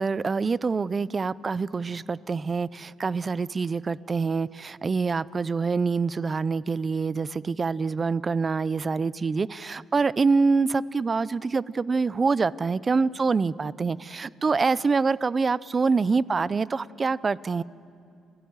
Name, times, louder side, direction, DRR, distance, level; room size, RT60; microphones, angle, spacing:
voice 1, 0.0-17.6, right 4 dB, 30° right, 20 dB, 0.5 m, -25 dB
28.0 x 17.0 x 9.6 m, 2.6 s
cardioid pair, 125°, 0 cm